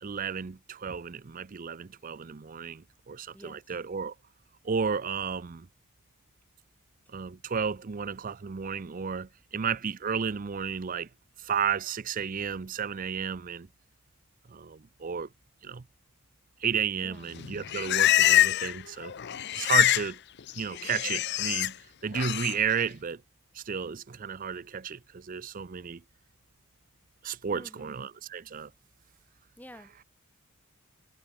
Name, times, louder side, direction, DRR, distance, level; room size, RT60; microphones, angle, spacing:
voice 1, 0.0-4.1 4.6-5.7 7.1-11.1 11.4-13.7 14.5-15.3 15.6-15.8 16.6-19.1 19.5-20.2 20.5-21.8 22.0-23.2 23.5-26.0 27.2-28.7, right 6 dB, 35° right, 0.5 m, -33 dB
voice 2, 3.3-3.8 17.0-17.3 27.5-28.0 29.6-30.1, equal, 5° left, 4.9 m, -50 dB
Livestock farm animals working animals, 17.4-18.8 19.0-20.1 20.4-21.7 22.1-22.5, left 13 dB, 50° left, 0.5 m, -25 dB
head